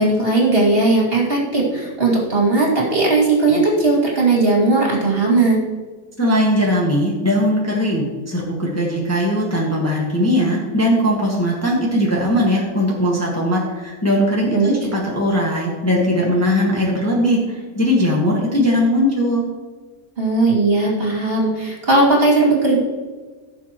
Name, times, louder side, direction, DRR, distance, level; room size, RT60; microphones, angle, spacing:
voice 1, 0.0-5.6 14.5-14.8 20.2-22.8, right 2 dB, 40° right, -4 dB, 3.0 m, -17 dB
voice 2, 6.2-19.4, equal, 10° left, -3 dB, 1.5 m, -19 dB
16.0 x 7.0 x 3.1 m, 1.4 s
omnidirectional pair, 1.6 m